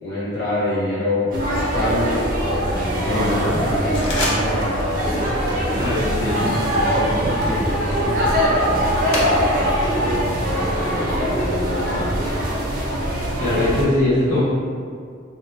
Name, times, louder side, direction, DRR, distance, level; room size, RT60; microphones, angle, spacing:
voice 1, 0.0-5.9 6.7-12.2 13.3-13.4, left 1 dB, 65° left, -11 dB, 1.4 m, -27 dB
sound 1, 1.3-13.8, equal, 45° right, 0.6 m, -22 dB
voice 2, 3.0-3.6 5.7-6.6 13.4-14.4, left 1 dB, 40° left, -14 dB, 1.3 m, -22 dB
sound 2, 3.9-4.9 5.1-5.5 6.0-9.8 10.1-11.6, left 1 dB, 80° left, 0.7 m, -31 dB
3.0 x 2.9 x 3.2 m, 2.2 s
head